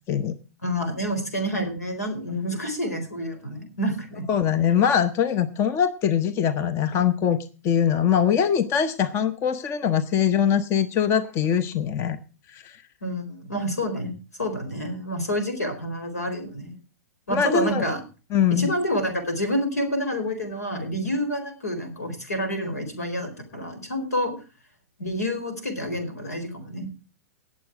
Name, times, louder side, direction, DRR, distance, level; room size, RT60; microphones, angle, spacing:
voice 1, 0.6-4.2 13.0-16.8 17.3-18.0 18.5-24.3 25.0-26.9, equal, 85° left, 7 dB, 4.5 m, -28 dB
voice 2, 4.3-7.4 7.6-12.2 12.5-12.8 17.3-17.8 18.3-18.7, left 8 dB, 30° left, 13 dB, 0.9 m, -22 dB
19.0 x 7.6 x 4.8 m, 0.34 s
hypercardioid pair, 105°, 8 cm